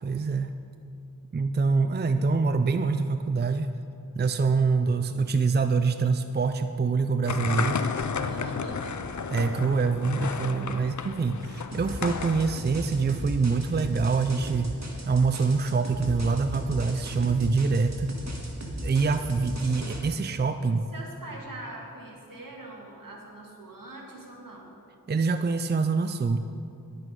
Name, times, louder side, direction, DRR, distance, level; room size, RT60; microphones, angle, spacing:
voice 1, 0.0-0.6 1.3-3.8 4.1-7.8 9.3-14.7 15.0-18.1 18.8-20.8 25.1-26.4, right 4 dB, 30° right, 9 dB, 0.4 m, -25 dB
sound 1, 7.2-12.6, left 5 dB, 60° left, 0.6 m, -32 dB
voice 2, 8.2-9.0 20.9-24.7, right 2 dB, 75° right, -1 dB, 2.0 m, -42 dB
sound 2, 11.7-20.0, equal, 50° right, 1.8 m, -36 dB
11.0 x 9.1 x 5.3 m, 2.6 s
wide cardioid pair, 45°, 33 cm